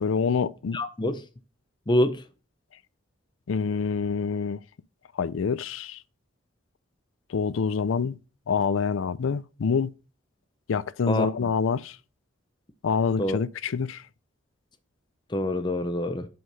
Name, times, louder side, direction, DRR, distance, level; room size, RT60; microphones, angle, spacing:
voice 1, 0.0-0.8 3.5-4.6 5.2-6.0 7.3-8.2 8.5-9.9 10.7-12.0 12.8-14.0, left 5 dB, 90° left, 0.4 m, -26 dB
voice 2, 0.7-1.3 1.9-2.2 11.1-11.3 13.2-13.4 15.3-16.3, left 1 dB, 25° left, 0.6 m, -26 dB
5.7 x 5.4 x 6.6 m
head